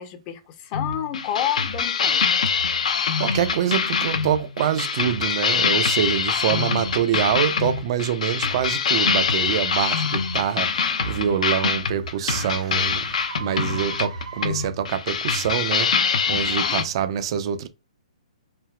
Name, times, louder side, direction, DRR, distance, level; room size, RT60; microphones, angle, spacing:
voice 1, 0.0-2.4 16.3-16.7, left 11 dB, 30° left, 0.6 m, -30 dB
sound 1, 0.7-16.8, left 6 dB, 75° left, 0.5 m, -24 dB
voice 2, 3.2-13.0 13.4-15.9 16.3-17.7, right 9 dB, 45° right, 0.5 m, -25 dB
sound 2, 11.1-15.0, right 5 dB, 70° right, 1.2 m, -41 dB
3.3 x 2.3 x 2.2 m
hypercardioid pair, 145°, 4 cm